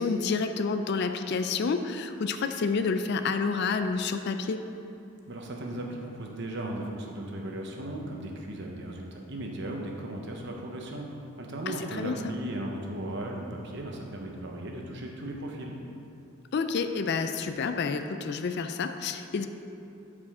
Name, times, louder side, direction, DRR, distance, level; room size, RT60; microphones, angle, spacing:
voice 1, 0.0-4.6 11.7-12.2 16.5-19.5, left 4 dB, 50° left, 8 dB, 0.3 m, -29 dB
voice 2, 5.3-15.8, right 1 dB, 55° right, 0 dB, 0.9 m, -36 dB
11.5 x 5.0 x 3.7 m, 2.7 s
head